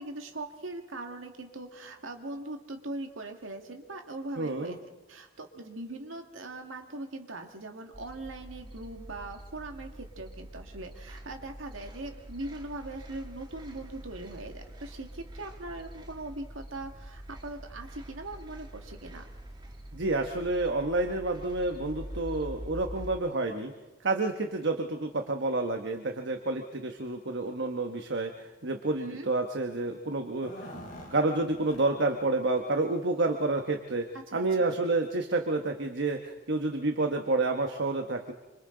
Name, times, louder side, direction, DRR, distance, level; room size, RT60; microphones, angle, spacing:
voice 1, 0.0-4.8 5.1-19.2 29.0-29.3 34.3-34.8, right 2 dB, 90° right, 4 dB, 2.0 m, -41 dB
voice 2, 4.4-4.8 19.9-23.7 24.0-30.7 31.1-34.0 34.3-38.3, right 2 dB, 65° right, 5 dB, 1.2 m, -29 dB
sound 1, 7.9-23.2, right 1 dB, 25° right, 1.7 m, -45 dB
sound 2, 30.2-32.3 32.5-32.6 33.1-33.2 34.1-34.2 34.6-34.7, left 1 dB, 40° left, 4.5 m, -46 dB
26.5 x 25.5 x 3.9 m, 1.2 s
head